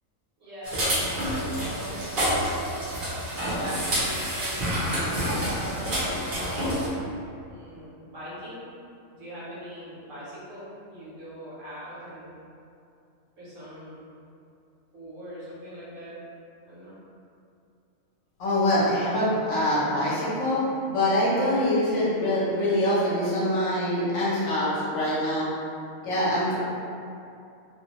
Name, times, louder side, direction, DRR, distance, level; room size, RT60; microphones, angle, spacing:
voice 1, 0.4-0.9 1.2-2.2 3.5-5.1 5.4-6.8 7.5-8.7 9.1-12.3 13.4-14.0 14.9-16.2 16.7-17.0, equal, 65° right, -10 dB, 1.3 m, -41 dB
sound 1, 0.6-6.9, equal, 45° right, 0.9 m, -28 dB
voice 2, 18.4-25.5 26.0-26.6, left 1 dB, 65° left, -8 dB, 1.0 m, -24 dB
2.8 x 2.2 x 2.8 m, 2.6 s
omnidirectional pair, 1.4 m